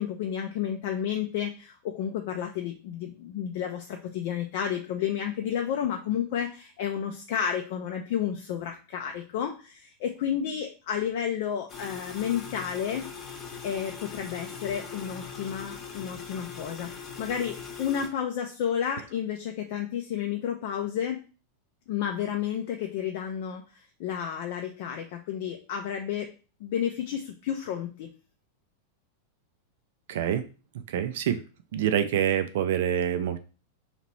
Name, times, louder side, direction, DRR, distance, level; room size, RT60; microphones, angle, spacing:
voice 1, 0.0-13.0 13.6-21.2 21.9-26.3 26.6-28.1, left 9 dB, 50° left, 3 dB, 0.5 m, -31 dB
sound 1, 11.7-18.1, left 6 dB, 25° left, 0.9 m, -41 dB
voice 2, 30.1-30.4 30.7-31.4 31.7-33.4, right 9 dB, 55° right, 10 dB, 0.4 m, -26 dB
2.9 x 2.9 x 4.4 m, 0.34 s
figure-of-eight pair, 90°, 0 cm